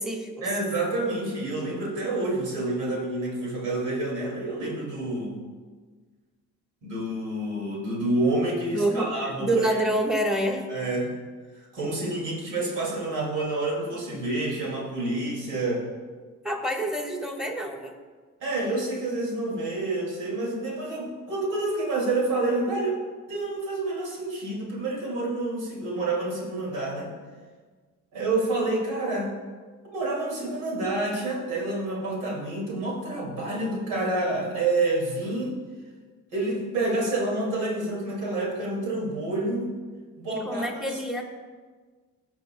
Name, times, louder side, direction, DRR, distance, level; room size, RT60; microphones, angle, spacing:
voice 1, 0.4-5.4 6.8-9.8 10.7-11.1 11.7-15.9 18.4-23.0 23.3-27.1 28.1-29.3 29.8-35.5 36.3-39.7 40.2-41.0, right 2 dB, 85° right, -3 dB, 2.3 m, -28 dB
voice 2, 8.7-10.6 16.4-17.9 40.3-41.2, right 1 dB, ahead, 1 dB, 1.3 m, -27 dB
14.5 x 6.0 x 2.2 m, 1.5 s
cardioid pair, 90°, 30 cm